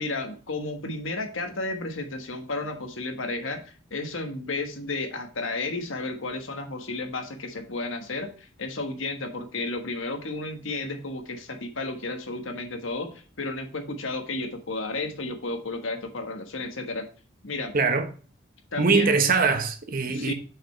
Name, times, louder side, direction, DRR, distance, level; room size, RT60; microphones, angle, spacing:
voice 1, 0.0-3.6 3.9-17.1 17.4-17.8 18.7-19.1 20.1-20.3, left 2 dB, 90° left, 1.4 m, -32 dB
voice 2, 17.7-18.1 18.8-20.3, right 4 dB, 45° right, 1.0 m, -22 dB
6.4 x 5.1 x 4.5 m
head